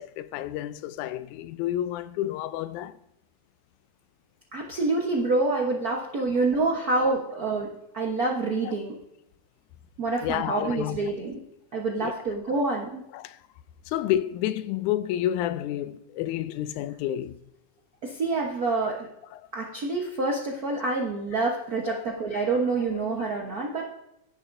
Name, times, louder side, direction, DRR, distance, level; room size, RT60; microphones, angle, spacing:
voice 1, 0.0-3.0 8.0-8.1 8.7-8.8 10.2-11.0 12.0-12.1 13.1-13.4 13.9-17.4 18.8-18.9 19.3-19.5 20.7-20.8 21.4-21.5 21.9-22.0 23.0-23.3, left 12 dB, 90° left, 2.0 m, -30 dB
voice 2, 4.5-9.0 10.0-11.4 11.7-13.0 18.0-19.1 19.5-23.8, right 3 dB, 70° right, 0.8 m, -27 dB
16.5 x 10.5 x 2.6 m
omnidirectional pair, 3.4 m